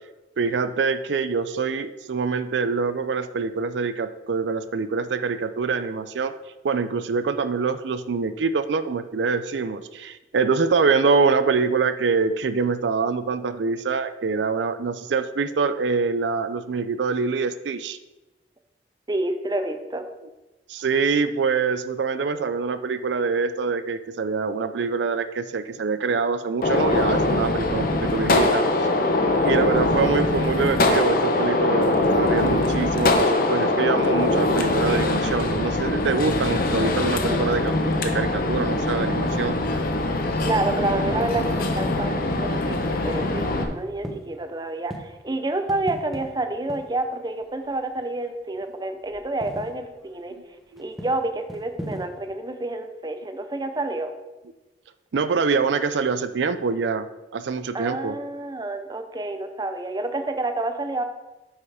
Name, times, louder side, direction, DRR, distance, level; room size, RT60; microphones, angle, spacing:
voice 1, 0.4-6.3 6.6-18.0 20.7-28.7 29.4-39.6 50.7-50.8 55.1-57.1 57.3-58.1, right 4 dB, 85° right, 12 dB, 0.5 m, -25 dB
voice 2, 19.1-20.1 28.3-28.7 40.4-50.3 50.8-54.1 57.7-61.0, right 2 dB, 25° right, 7 dB, 0.7 m, -29 dB
Gunshot gunfire, 26.6-43.6, left 2 dB, 55° left, 0.9 m, -22 dB
sound 1, 41.3-48.6 48.9-52.3, equal, ahead, 0.9 m, -41 dB
8.0 x 5.5 x 4.9 m, 1.1 s
head